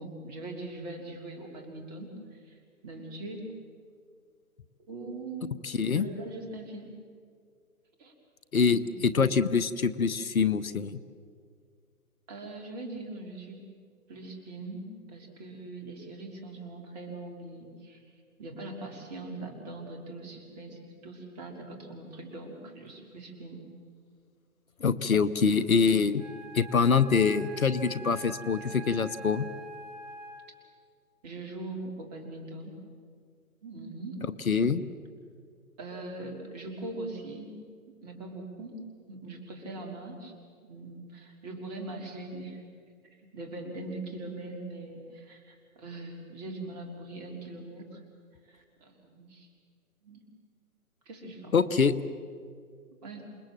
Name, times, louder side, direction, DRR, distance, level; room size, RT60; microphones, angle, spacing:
voice 1, 0.0-3.6 4.9-5.6 5.9-6.9 8.0-8.1 8.7-8.9 12.3-13.7 14.1-18.0 18.4-23.7 25.2-25.3 31.2-32.7 33.6-34.2 35.8-37.5 37.9-40.3 40.6-42.6 43.2-48.0 48.5-49.5 50.0-50.2 51.1-51.8 52.9-53.3, right 2 dB, 25° right, 3 dB, 3.5 m, -41 dB
voice 2, 5.6-6.1 8.5-11.0 24.8-26.2 26.5-29.4 34.5-34.8 51.5-51.9, left 5 dB, 65° left, 15 dB, 1.1 m, -25 dB
Wind instrument woodwind instrument, 26.2-30.8, right 1 dB, 55° right, 4.1 m, -45 dB
28.0 x 20.5 x 7.5 m, 2.1 s
figure-of-eight pair, 135°, 44 cm